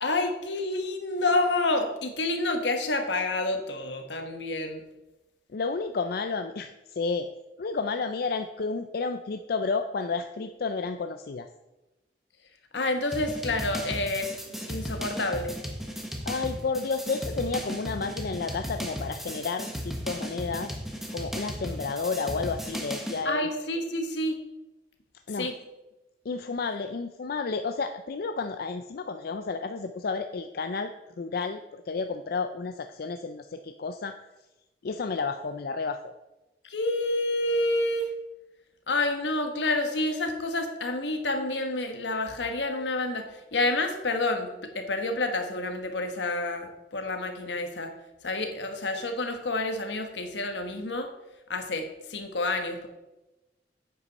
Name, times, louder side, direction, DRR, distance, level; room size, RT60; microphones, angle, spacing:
voice 1, 0.0-4.8 12.7-15.6 23.2-24.4 25.4-25.5 36.6-38.1 38.9-47.9 48.2-51.1 51.5-52.9, left 2 dB, 80° left, 6 dB, 1.3 m, -29 dB
voice 2, 5.5-7.3 7.6-11.5 16.2-20.7 21.1-23.5 25.3-25.5 26.3-34.1 34.8-36.1, left 4 dB, 60° left, 7 dB, 0.4 m, -31 dB
sound 1, 13.1-23.2, equal, ahead, 1.3 m, -35 dB
9.9 x 8.4 x 4.1 m, 1.0 s
head